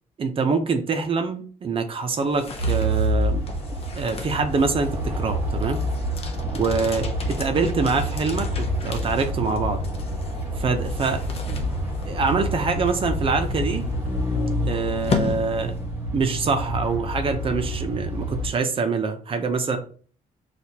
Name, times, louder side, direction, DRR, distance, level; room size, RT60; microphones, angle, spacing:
voice 1, 0.2-3.4 3.9-5.8 6.5-9.8 10.6-11.2 11.5-11.6 12.1-13.8 14.6-15.7 16.1-19.8, right 4 dB, 35° right, 6 dB, 0.6 m, -25 dB
sound 1, 2.1-16.2, left 4 dB, 40° left, 0.6 m, -35 dB
sound 2, 2.6-18.5, equal, 15° right, 1.4 m, -28 dB
6.2 x 2.4 x 2.8 m, 0.43 s
cardioid pair, 125°, 15 cm